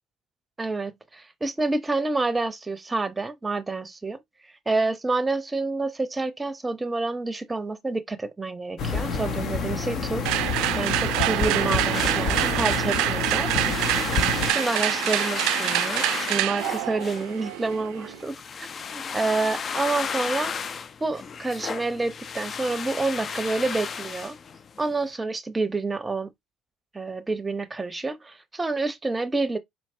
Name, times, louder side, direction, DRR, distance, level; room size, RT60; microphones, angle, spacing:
voice 1, 0.6-4.2 4.7-13.8 14.5-20.5 21.0-24.4 24.8-26.3 26.9-29.6, right 3 dB, 20° right, 0.7 m, -28 dB
sound 1, 8.8-14.5, left 5 dB, 55° left, 1.0 m, -28 dB
sound 2, 10.3-18.2, right 15 dB, 70° right, 0.4 m, -26 dB
sound 3, 11.9-24.9, left 6 dB, 40° left, 0.4 m, -34 dB
4.5 x 3.2 x 2.6 m
hypercardioid pair, 75°, 0 cm